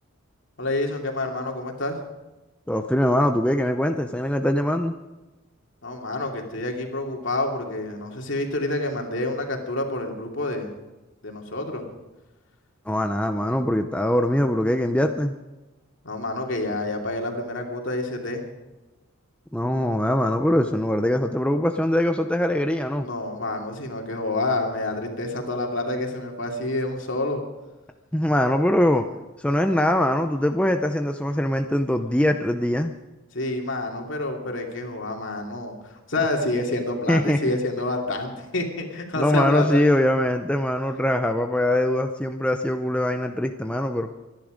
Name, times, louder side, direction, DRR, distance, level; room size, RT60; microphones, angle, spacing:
voice 1, 0.6-2.0 5.8-10.7 11.2-11.8 16.0-18.4 23.0-27.4 33.3-39.8, left 2 dB, 60° left, 2 dB, 2.8 m, -28 dB
voice 2, 2.7-4.9 12.9-15.3 19.5-23.1 28.1-29.0 29.4-32.9 37.1-37.6 39.1-44.1, left 1 dB, 5° left, 5 dB, 0.6 m, -22 dB
24.5 x 10.5 x 5.1 m, 1.1 s
head